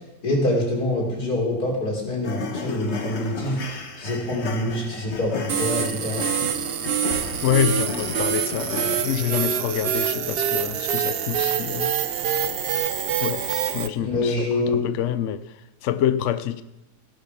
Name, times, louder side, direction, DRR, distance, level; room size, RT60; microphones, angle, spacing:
voice 1, 0.2-6.2 14.0-14.8, left 1 dB, 85° left, -2 dB, 4.0 m, -25 dB
sound 1, 2.2-9.0, left 4 dB, 50° left, 1.5 m, -34 dB
sound 2, 5.5-13.9, right 8 dB, 55° right, 0.7 m, -25 dB
Explosion, 7.1-8.8, right 1 dB, 80° right, 6.9 m, -40 dB
voice 2, 7.4-11.9 13.2-13.4 13.7-16.6, left 10 dB, 65° left, 13 dB, 0.8 m, -26 dB
17.0 x 7.0 x 5.8 m, 0.93 s
omnidirectional pair, 1.6 m